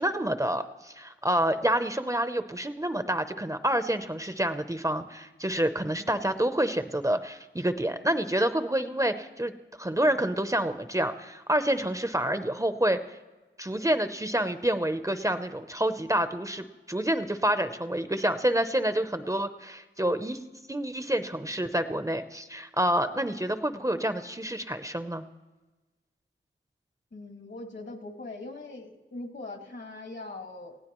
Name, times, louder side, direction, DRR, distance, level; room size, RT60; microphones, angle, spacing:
voice 1, 0.0-9.5 9.8-13.2 13.6-20.4 20.7-25.3, right 1 dB, 15° right, 9 dB, 0.7 m, -28 dB
voice 2, 27.1-30.8, left 2 dB, 65° left, 4 dB, 2.0 m, -41 dB
19.5 x 16.0 x 3.1 m, 1.2 s
wide cardioid pair, 85°, 20 cm